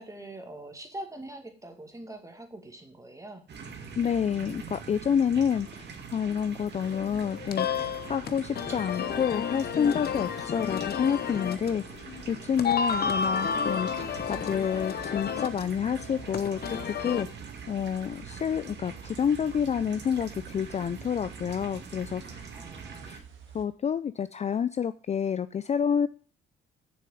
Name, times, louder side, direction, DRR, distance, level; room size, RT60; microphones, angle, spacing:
voice 1, 0.0-3.4 12.6-12.8 22.4-23.2, right 1 dB, 15° right, 5 dB, 2.2 m, -43 dB
sound 1, 3.5-23.2, right 5 dB, 60° right, 2.1 m, -44 dB
voice 2, 4.0-11.8 12.3-13.9 14.2-16.8 17.0-17.3 17.7-22.4 23.0-23.2 23.5-26.1, left 7 dB, 35° left, 14 dB, 0.4 m, -28 dB
sound 2, 6.8-17.2, left 6 dB, 50° left, 0.9 m, -32 dB
sound 3, 14.1-23.6, right 8 dB, 75° right, 2.0 m, -49 dB
7.0 x 6.5 x 7.8 m, 0.40 s
cardioid pair, 90°, 20 cm